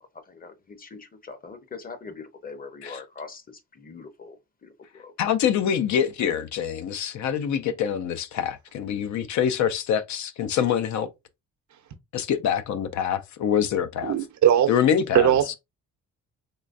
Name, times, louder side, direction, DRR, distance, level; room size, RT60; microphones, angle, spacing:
voice 1, 0.3-3.4 3.7-5.1, left 4 dB, 30° left, 0.8 m, -42 dB
voice 2, 5.2-11.1 12.1-14.1 14.7-15.3, left 8 dB, 70° left, 0.6 m, -25 dB
voice 3, 14.0-14.7 15.1-15.6, right 10 dB, 70° right, 0.8 m, -19 dB
3.8 x 3.1 x 2.5 m
cardioid pair, 90°, 30 cm